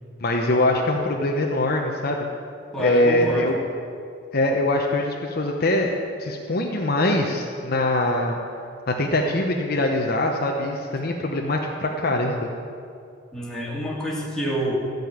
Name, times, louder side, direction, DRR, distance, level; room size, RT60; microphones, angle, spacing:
voice 1, 0.2-2.3 2.8-3.6 4.3-5.9 6.2-8.4 8.9-12.5, left 1 dB, 55° left, 1 dB, 0.9 m, -23 dB
voice 2, 2.7-3.6 13.3-14.8, equal, 5° left, -5 dB, 2.4 m, -27 dB
14.0 x 5.4 x 9.3 m, 2.4 s
head